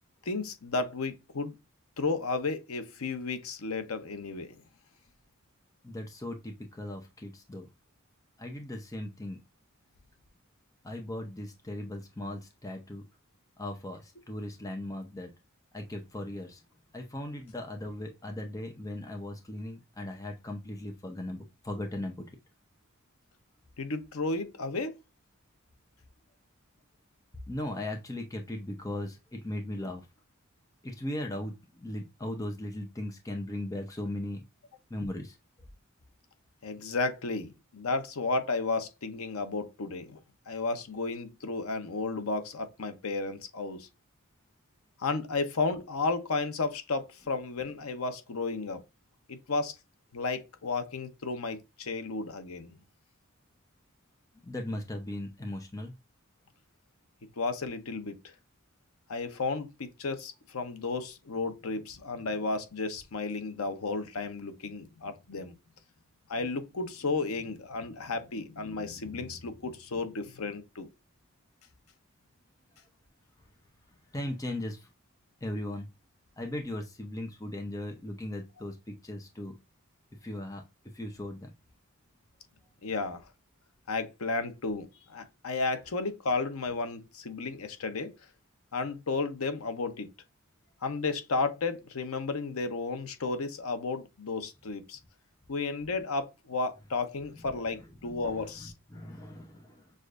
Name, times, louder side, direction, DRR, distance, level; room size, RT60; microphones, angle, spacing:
voice 1, 0.3-1.6 2.0-4.6 23.8-25.0 36.6-40.2 40.5-43.9 45.0-48.8 49.3-49.7 50.1-52.8 57.4-58.3 59.1-65.5 66.3-70.9 82.8-83.2 83.9-88.1 88.7-90.1 90.8-95.0 95.5-98.7, left 3 dB, 90° left, 0.8 m, -33 dB
voice 2, 5.8-7.7 8.4-9.4 10.8-13.0 13.6-15.3 15.7-16.6 16.9-22.3 27.5-30.1 30.8-34.4 34.9-35.4 54.4-55.9 74.1-74.9 75.4-75.9 76.4-79.6 80.2-80.6 80.9-81.5 98.0-98.3 98.6-99.9, left 1 dB, 15° left, 0.7 m, -38 dB
6.4 x 2.5 x 2.5 m
head